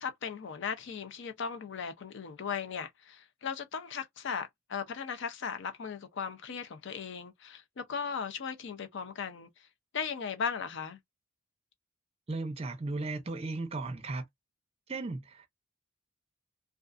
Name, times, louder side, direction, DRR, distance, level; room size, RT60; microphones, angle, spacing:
voice 1, 0.0-9.5 9.9-11.0, left 6 dB, 60° left, 0.4 m, -37 dB
voice 2, 12.3-14.2 14.9-15.5, right 3 dB, 30° right, 0.5 m, -36 dB
2.4 x 2.3 x 2.4 m
head